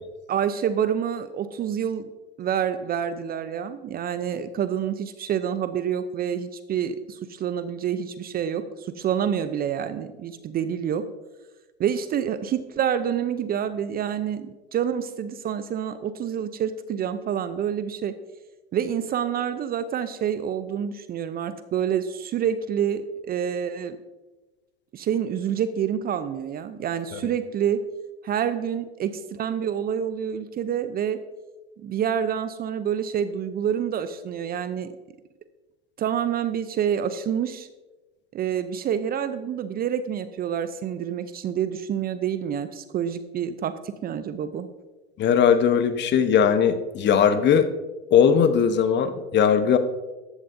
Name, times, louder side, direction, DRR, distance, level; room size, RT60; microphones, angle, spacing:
voice 1, 0.3-2.1 2.4-11.0 11.8-18.1 18.7-24.0 24.9-27.8 28.2-31.2 31.8-34.9 36.0-37.7 38.3-44.7, right 8 dB, 30° right, 12 dB, 0.6 m, -27 dB
voice 2, 45.2-47.7 48.1-49.8, left 7 dB, 35° left, 10 dB, 1.0 m, -19 dB
14.5 x 11.0 x 2.7 m, 1.1 s
hypercardioid pair, 90°, 33 cm